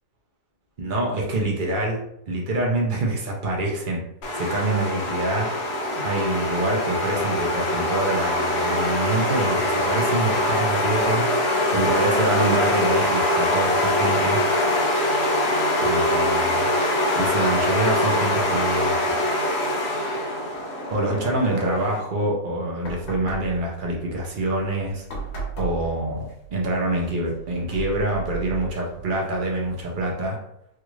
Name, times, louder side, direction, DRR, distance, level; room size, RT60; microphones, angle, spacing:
voice 1, 0.8-4.0 4.3-5.5 5.9-11.3 11.7-14.4 15.8-16.7 17.1-19.0 20.9-25.1 25.6-30.4, right 1 dB, 50° right, -2 dB, 0.6 m, -26 dB
sound 1, 4.2-22.0, left 1 dB, 60° left, 0.7 m, -23 dB
sound 2, 22.8-30.3, right 5 dB, 80° left, 1.4 m, -37 dB
3.4 x 2.4 x 3.1 m, 0.76 s
omnidirectional pair, 1.6 m